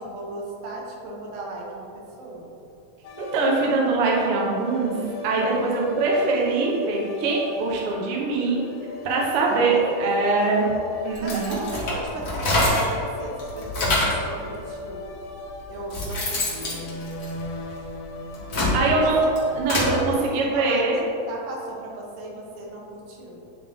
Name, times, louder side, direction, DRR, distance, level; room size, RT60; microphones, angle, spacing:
voice 1, 0.0-2.5 9.4-10.7 11.2-15.0 15.7-16.9 19.0-19.3 19.9-23.4, right 1 dB, 70° right, -2 dB, 2.3 m, -36 dB
sound 1, 3.0-20.1, left 1 dB, 80° left, 2.3 m, -38 dB
voice 2, 3.2-4.9 5.2-8.6 9.0-10.7 11.0-11.6 18.7-21.0, right 3 dB, 85° right, -3 dB, 1.2 m, -23 dB
sound 2, 11.1-13.0 13.4-14.3 15.1-15.2 15.6-17.8 18.3-19.9, left 1 dB, 60° left, 0.9 m, -25 dB
9.7 x 3.6 x 3.6 m, 2.7 s
omnidirectional pair, 4.1 m